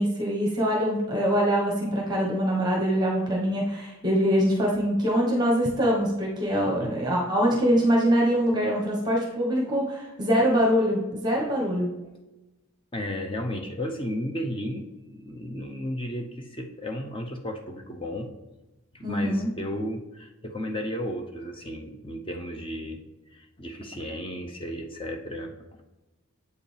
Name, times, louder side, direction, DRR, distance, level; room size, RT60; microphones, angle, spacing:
voice 1, 0.0-11.9 19.0-19.5, equal, 20° right, -2 dB, 1.2 m, -24 dB
voice 2, 6.5-6.9 12.9-18.3 18.9-23.0 23.3-25.5, equal, 25° left, 3 dB, 0.8 m, -34 dB
8.0 x 5.0 x 3.4 m, 1.1 s
head